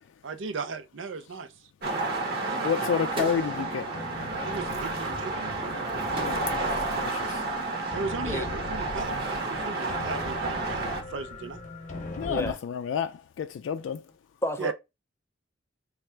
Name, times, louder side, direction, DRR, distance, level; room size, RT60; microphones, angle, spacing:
voice 1, 0.2-1.5 4.4-5.5 7.9-11.6 14.6-14.7, right 4 dB, 80° right, 0.5 m, -36 dB
sound 1, 1.8-11.0, right 3 dB, 55° right, 0.9 m, -31 dB
voice 2, 2.6-4.2 6.1-7.5 12.2-14.1, left 7 dB, 85° left, 0.3 m, -31 dB
sound 2, 2.7-6.8, right 2 dB, 30° right, 0.7 m, -41 dB
sound 3, 3.1-12.6, left 1 dB, 40° left, 0.7 m, -41 dB
voice 3, 12.2-12.6 14.4-14.7, left 1 dB, 15° left, 0.4 m, -30 dB
3.2 x 2.4 x 4.3 m
head